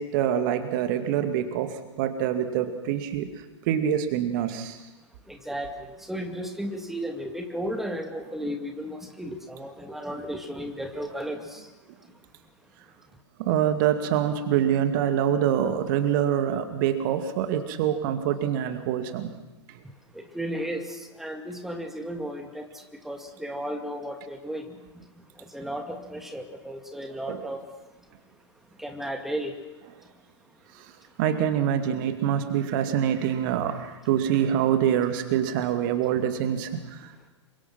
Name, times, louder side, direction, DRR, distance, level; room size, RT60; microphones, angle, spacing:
voice 1, 0.0-3.3 3.7-4.8 13.4-19.3 27.3-27.5 31.2-37.3, right 9 dB, 40° right, 8 dB, 2.2 m, -25 dB
voice 2, 5.3-11.7 20.1-25.0 25.4-27.7 28.8-29.5, equal, ahead, 5 dB, 2.2 m, -34 dB
27.5 x 24.0 x 6.1 m, 1.0 s
figure-of-eight pair, 105°, 15 cm